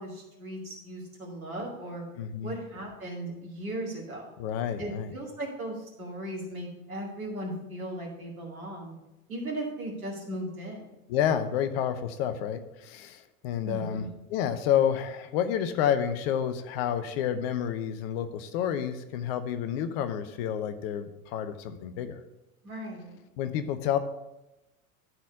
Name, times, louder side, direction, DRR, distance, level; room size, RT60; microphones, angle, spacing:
voice 1, 0.0-2.1 2.4-4.3 4.8-8.9 9.3-10.9 13.6-14.1 22.6-23.2, right 1 dB, 75° right, 0 dB, 2.3 m, -37 dB
voice 2, 2.2-2.5 4.4-5.1 11.1-14.0 14.3-22.2 23.4-24.0, left 9 dB, 45° left, 9 dB, 0.7 m, -29 dB
11.5 x 4.2 x 5.3 m, 0.97 s
figure-of-eight pair, 80°, 43 cm